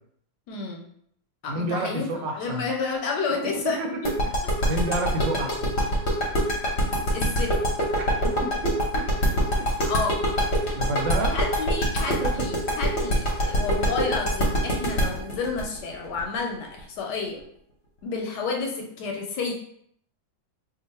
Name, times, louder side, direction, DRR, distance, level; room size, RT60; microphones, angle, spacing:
voice 1, 0.5-0.8 1.4-4.1 7.1-7.6 9.8-10.2 11.3-17.4 18.0-19.5, left 4 dB, 75° left, 1 dB, 1.0 m, -30 dB
voice 2, 1.5-2.7 3.6-3.9 4.2-4.4 4.7-5.7 8.4-9.7 10.8-11.5 12.1-12.3 13.4-13.6, right 2 dB, 80° right, 3 dB, 1.3 m, -30 dB
sound 1, 4.0-16.8, equal, 50° left, 0.8 m, -24 dB
2.9 x 2.3 x 4.0 m, 0.67 s
omnidirectional pair, 2.0 m